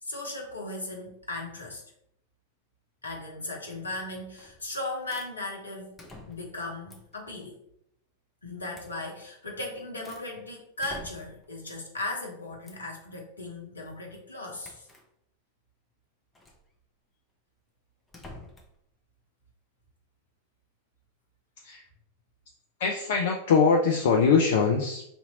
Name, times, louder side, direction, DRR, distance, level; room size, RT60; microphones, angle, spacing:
voice 1, 0.0-1.8 3.0-6.0 6.3-7.6 8.4-14.9, left 2 dB, 75° left, 0 dB, 0.9 m, -37 dB
sound 1, 4.4-4.7 5.1-5.3 6.0-6.6 6.9-7.2 8.7-9.0 9.5-10.3 10.8-11.5 12.6-12.9 14.6-15.1 16.3-16.6 18.1-18.8, left 1 dB, 10° left, 0.7 m, -47 dB
voice 2, 22.8-25.1, left 5 dB, 55° left, 1 dB, 0.4 m, -22 dB
2.8 x 2.6 x 4.1 m, 0.73 s
figure-of-eight pair, 90°, 0 cm